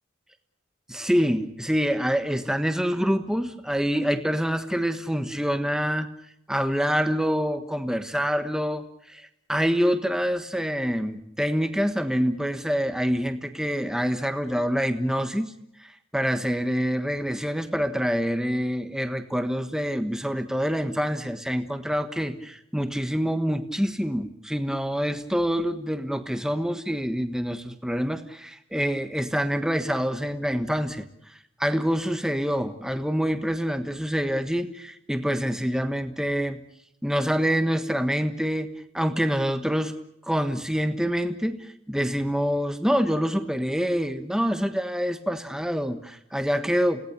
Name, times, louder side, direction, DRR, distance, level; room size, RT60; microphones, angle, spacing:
voice 1, 0.9-6.1 6.5-15.5 15.8-31.0 31.6-36.6 37.0-38.7 38.9-39.9 40.2-47.0, equal, 5° right, 8 dB, 1.3 m, -26 dB
30.0 x 18.0 x 6.9 m, 0.76 s
head